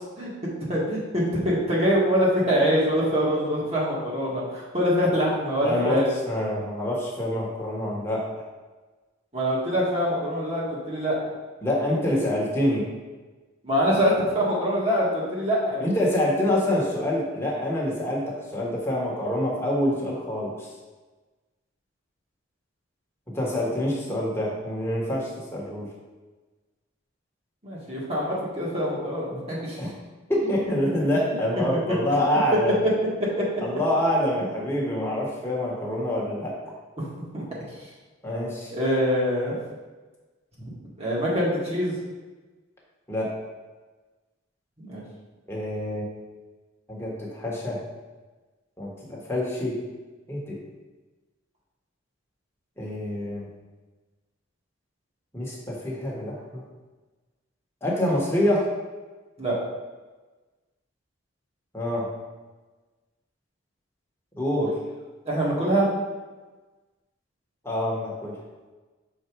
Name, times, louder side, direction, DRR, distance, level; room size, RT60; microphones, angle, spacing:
voice 1, 0.2-6.1 9.3-11.2 13.6-15.8 27.6-29.8 31.3-31.4 31.9-32.2 33.2-33.4 37.3-37.4 38.7-39.6 41.0-41.9 44.8-45.0 59.4-59.6 65.3-65.9, equal, 30° right, -6 dB, 1.7 m, -24 dB
voice 2, 5.6-8.4 11.6-12.9 15.8-20.7 23.3-25.9 29.8-29.9 30.3-32.8 33.6-36.6 38.2-38.7 43.1-43.3 45.5-46.1 46.9-47.8 48.8-49.8 50.3-50.6 52.8-53.5 55.3-56.6 57.8-58.7 61.7-62.1 64.4-64.8 67.6-68.4, left 1 dB, 10° left, -4 dB, 1.5 m, -26 dB
5.8 x 4.5 x 4.7 m, 1.3 s
head